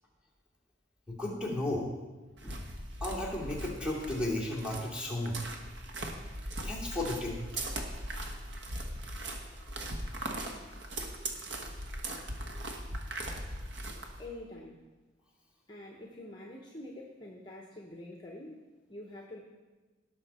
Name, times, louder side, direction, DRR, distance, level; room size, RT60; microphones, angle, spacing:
voice 1, 1.1-1.9 2.4-2.6 3.0-5.4 6.6-7.4, left 1 dB, 5° right, -5 dB, 2.6 m, -34 dB
sound 1, 2.4-14.3, right 1 dB, 60° right, 1.3 m, -39 dB
voice 2, 14.2-14.8 15.7-18.6 18.9-19.4, left 1 dB, 25° left, 0 dB, 1.0 m, -46 dB
17.5 x 6.3 x 4.3 m, 1.3 s
head